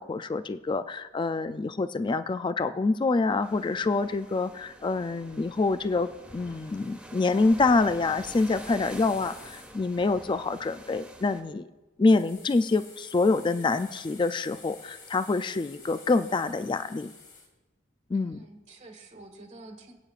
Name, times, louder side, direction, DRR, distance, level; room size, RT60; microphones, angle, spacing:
voice 1, 0.0-11.7 12.0-17.1 18.1-18.4, left 3 dB, 25° left, 12 dB, 0.3 m, -26 dB
sound 1, 3.4-11.4, right 1 dB, 5° right, 1.4 m, -47 dB
sound 2, 8.2-9.7 12.1-17.5, left 4 dB, 45° left, 2.4 m, -50 dB
voice 2, 18.1-19.9, right 2 dB, 40° right, 2 dB, 1.5 m, -48 dB
24.5 x 9.0 x 2.5 m, 1.1 s
head